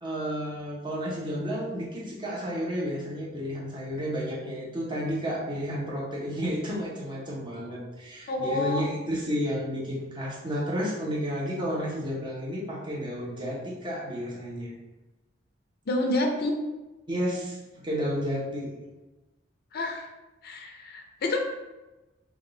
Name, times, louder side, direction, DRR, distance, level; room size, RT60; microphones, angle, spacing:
voice 1, 0.0-14.7 17.1-18.7, equal, 25° right, -5 dB, 0.9 m, -31 dB
voice 2, 8.3-8.8 15.9-16.5 19.7-20.0 20.4-21.6, left 2 dB, 55° left, 3 dB, 0.4 m, -28 dB
3.5 x 2.3 x 3.8 m, 1.1 s
head